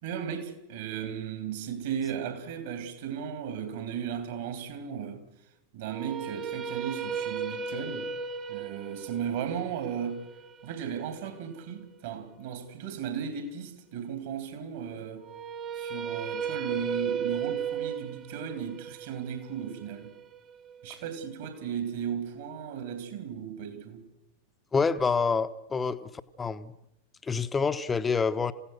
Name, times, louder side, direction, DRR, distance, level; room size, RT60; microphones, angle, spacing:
voice 1, 0.0-5.3 5.7-8.1 8.5-10.2 10.6-15.2 15.7-20.1 20.8-24.1, right 8 dB, 55° right, 3.7 m, -35 dB
sound 1, 5.9-12.0 15.2-21.3, right 7 dB, 30° right, 1.3 m, -36 dB
voice 2, 24.7-26.1 26.4-26.7 27.2-28.5, left 5 dB, 15° left, 1.0 m, -27 dB
27.5 x 16.5 x 6.5 m
figure-of-eight pair, 90°, 0 cm